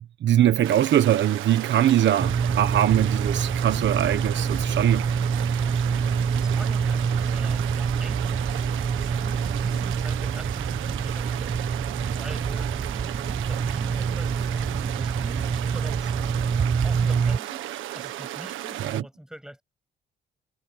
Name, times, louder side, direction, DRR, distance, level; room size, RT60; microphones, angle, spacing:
voice 1, 0.0-5.1 18.8-19.0, right 11 dB, 65° right, 1.2 m, -22 dB
sound 1, 0.6-19.0, right 13 dB, 90° right, 1.6 m, -35 dB
sound 2, 2.2-17.4, right 6 dB, 35° right, 0.9 m, -26 dB
voice 2, 5.8-16.4 16.8-17.6 17.9-19.6, equal, 5° right, 7.8 m, -45 dB
cardioid pair, 90°, 20 cm